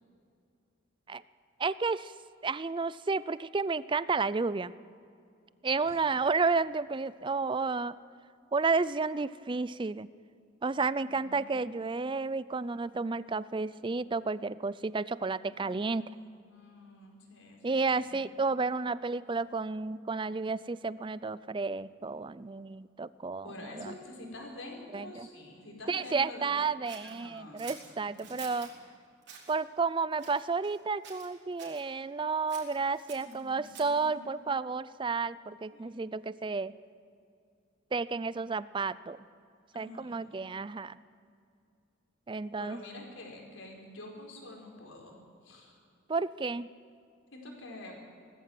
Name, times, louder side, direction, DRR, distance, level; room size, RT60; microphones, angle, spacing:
voice 1, 1.6-2.1 2.4-4.7 5.6-8.0 8.5-10.1 10.6-16.1 17.6-24.0 24.9-25.3 25.9-28.7 29.5-36.7 37.9-39.2 39.8-41.0 42.3-42.8 46.1-46.7, right 4 dB, 25° right, 17 dB, 0.4 m, -31 dB
voice 2, 11.0-12.2 15.5-18.2 23.4-26.6 27.0-28.4 33.1-34.3 35.7-36.0 39.7-40.5 42.6-45.8 47.3-48.0, left 1 dB, 75° left, 0 dB, 4.8 m, -48 dB
Scissors, 26.9-28.7 29.2-29.6 30.2-30.8 31.0-31.8 32.5-34.1, right 7 dB, 60° right, 3.8 m, -49 dB
19.5 x 14.5 x 9.2 m, 2.5 s
head